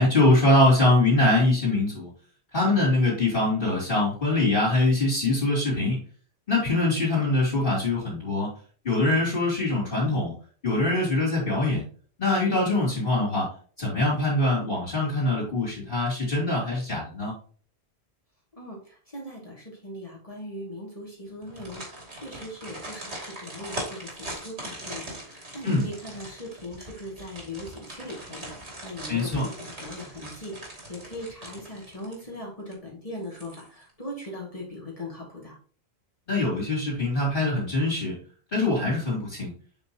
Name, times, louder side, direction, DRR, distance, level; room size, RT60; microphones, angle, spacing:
voice 1, 0.0-2.1 2.5-6.0 6.5-8.5 8.8-10.3 10.6-11.8 12.2-13.5 13.8-17.3 25.6-25.8 29.1-29.4 36.3-38.1 38.5-39.5, left 2 dB, 50° left, -8 dB, 3.3 m, -23 dB
voice 2, 18.6-35.6, left 1 dB, 30° left, -3 dB, 2.3 m, -40 dB
sound 1, 21.4-32.4 32.7-32.8 33.2-33.9 34.2-34.4, right 1 dB, 75° right, 2.8 m, -41 dB
7.7 x 5.7 x 2.9 m, 0.43 s
omnidirectional pair, 1.1 m